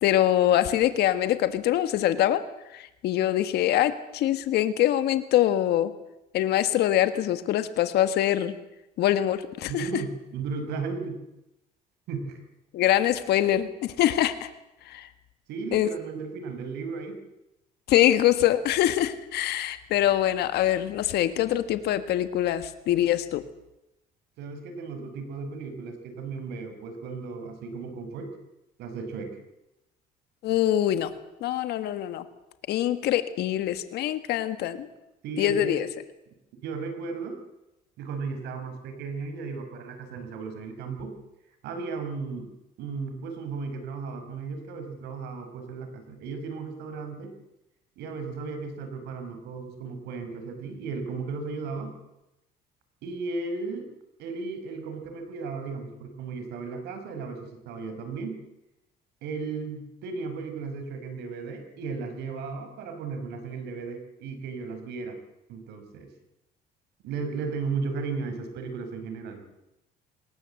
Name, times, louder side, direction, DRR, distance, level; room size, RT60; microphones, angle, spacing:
voice 1, 0.0-2.4 2.7-5.9 6.3-8.5 9.0-10.0 12.7-14.5 14.9-15.1 15.7-15.9 17.9-23.4 30.4-31.1 31.4-32.2 32.7-34.9 35.4-35.9, left 12 dB, 75° left, 11 dB, 1.7 m, -24 dB
voice 2, 9.7-11.2 12.1-12.4 15.5-17.2 24.4-28.3 28.8-29.4 35.2-35.8 36.5-37.4 38.0-41.2 41.6-42.5 42.8-47.3 48.0-52.0 53.0-53.9 54.2-58.4 59.2-65.2 65.5-66.1 67.0-69.4, right 4 dB, 85° right, 7 dB, 5.0 m, -35 dB
24.5 x 20.5 x 7.9 m, 0.91 s
cardioid pair, 110°, 17 cm